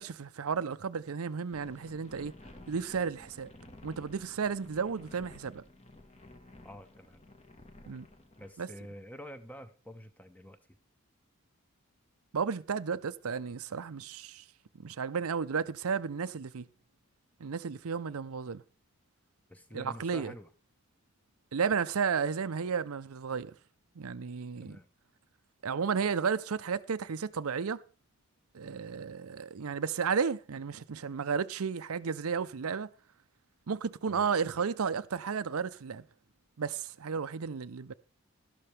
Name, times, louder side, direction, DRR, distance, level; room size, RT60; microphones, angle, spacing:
voice 1, 0.0-2.3 2.7-3.5 3.8-5.6 7.9-8.0 8.6-8.7 12.3-14.4 14.8-16.7 17.4-18.6 19.7-20.3 21.5-23.5 24.0-24.8 25.6-27.8 28.5-32.9 33.7-36.0 36.6-37.9, right 6 dB, 85° right, 0.6 m, -33 dB
sound 1, 1.5-8.5, left 1 dB, 30° left, 1.3 m, -53 dB
voice 2, 6.6-7.2 8.4-10.6 19.5-20.5 24.6-24.9 34.1-34.3 34.6-34.7, equal, 5° left, 0.9 m, -48 dB
12.5 x 12.0 x 3.3 m
head